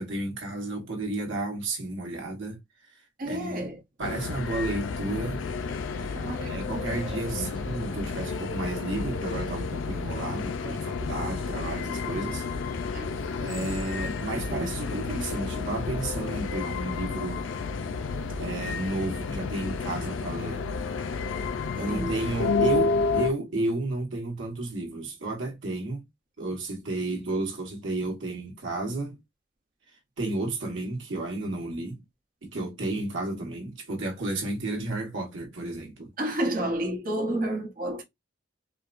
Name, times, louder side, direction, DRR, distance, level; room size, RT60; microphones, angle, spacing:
voice 1, 0.0-2.6 3.2-3.7 4.0-5.4 6.4-12.5 13.4-17.5 18.4-20.7 21.8-26.1 26.4-29.2 30.2-32.0 32.4-36.1, right 2 dB, 85° right, 1.3 m, -32 dB
voice 2, 3.2-3.8 6.1-7.6 12.9-13.2 21.9-22.2 36.2-38.0, right 1 dB, 45° right, 1.0 m, -31 dB
sound 1, 4.0-23.3, left 4 dB, 90° left, 0.5 m, -31 dB
4.5 x 2.2 x 2.5 m
head